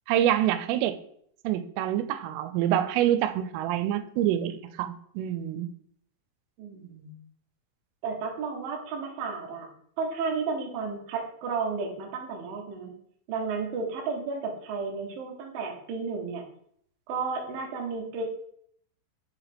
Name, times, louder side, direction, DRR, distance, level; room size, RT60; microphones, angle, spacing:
voice 1, 0.1-1.0 1.4-5.7, right 11 dB, 90° right, 11 dB, 3.1 m, -26 dB
voice 2, 6.6-7.1 8.0-9.7 10.0-13.0 13.3-16.5 17.1-18.2, right 4 dB, 75° right, 0 dB, 2.1 m, -32 dB
7.0 x 4.8 x 3.4 m, 0.67 s
omnidirectional pair, 5.6 m